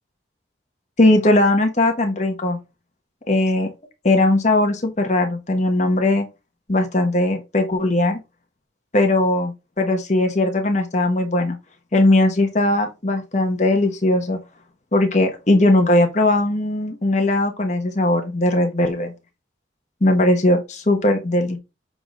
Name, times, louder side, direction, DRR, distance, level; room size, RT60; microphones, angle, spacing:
voice 1, 1.0-2.6 3.3-3.7 4.0-6.3 6.7-8.2 8.9-11.6 11.9-14.4 14.9-19.1 20.0-21.6, left 1 dB, 40° left, 1.2 m, -19 dB
7.0 x 3.8 x 3.8 m
head